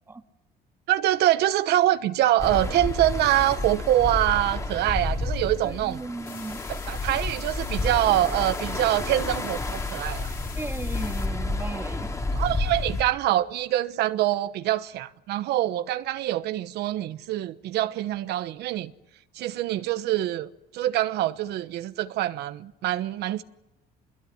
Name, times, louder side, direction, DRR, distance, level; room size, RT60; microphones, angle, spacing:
voice 1, 0.9-6.0 6.9-10.3 12.3-18.9 19.4-20.5 20.7-23.4, right 13 dB, 80° right, 1.1 m, -25 dB
sound 1, 2.4-13.0, left 2 dB, 20° left, 2.6 m, -30 dB
voice 2, 5.6-6.6 10.6-12.1, right 3 dB, 15° right, 1.7 m, -36 dB
sound 2, 6.3-11.3, left 8 dB, 60° left, 4.9 m, -45 dB
26.0 x 22.0 x 9.6 m
cardioid pair, 110°, 17 cm